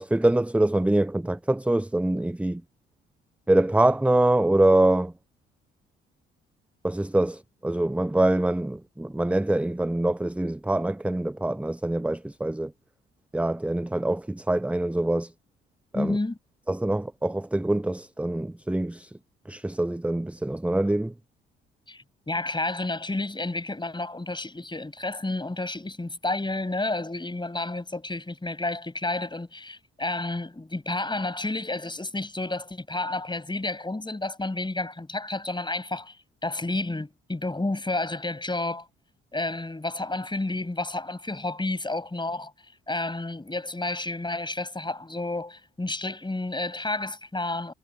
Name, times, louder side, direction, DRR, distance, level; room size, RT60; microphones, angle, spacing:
voice 1, 0.0-2.6 3.5-5.1 6.8-12.7 13.3-15.3 15.9-16.2 16.7-19.1 19.5-21.1, right 1 dB, 5° right, 0.7 m, -24 dB
voice 2, 15.9-16.4 21.9-36.2 36.4-38.9 39.3-47.7, left 2 dB, 15° left, 5.6 m, -31 dB
figure-of-eight pair, 45°, 30 cm